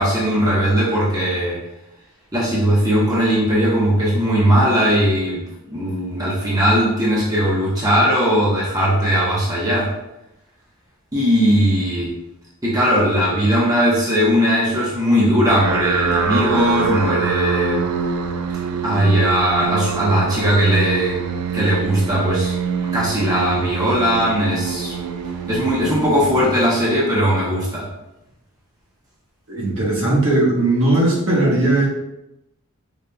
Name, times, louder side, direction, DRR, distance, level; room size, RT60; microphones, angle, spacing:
voice 1, 0.0-1.6 2.3-9.9 11.1-12.1 12.6-17.8 18.8-21.2 21.5-22.5 22.9-24.9 25.5-27.9, equal, 15° right, -6 dB, 0.7 m, -18 dB
sound 1, 15.5-26.9, right 5 dB, 85° right, 0.4 m, -24 dB
voice 2, 29.5-31.9, right 2 dB, 65° right, -4 dB, 1.1 m, -18 dB
5.0 x 2.8 x 2.2 m, 0.87 s
head